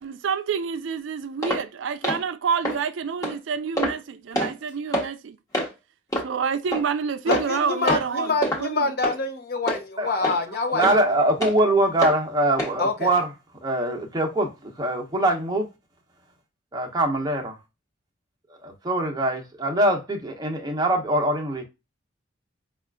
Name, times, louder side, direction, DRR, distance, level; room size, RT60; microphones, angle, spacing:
voice 1, 0.0-5.4 6.2-8.3 8.6-8.9, right 6 dB, 70° right, 0.4 m, -28 dB
sound 1, 1.4-1.6 2.0-2.2 2.6-2.8 3.2-3.4 3.8-4.0 4.3-4.5 4.9-5.1 5.5-5.7 6.1-6.3 6.7-6.8 7.3-7.6 7.9-8.1 8.4-8.6 9.0-9.2 9.7-9.8 10.2-10.4 10.8-10.9 11.4-11.5 12.0-12.2 12.6-12.7 13.2-13.3, equal, 20° left, 1.2 m, -25 dB
voice 2, 7.3-11.0 12.8-13.1, left 3 dB, 50° left, 0.9 m, -26 dB
voice 3, 10.0-10.3 10.7-13.3 13.6-15.7 16.7-17.6 18.6-21.6, right 1 dB, 20° right, 0.8 m, -23 dB
5.5 x 2.4 x 2.2 m
head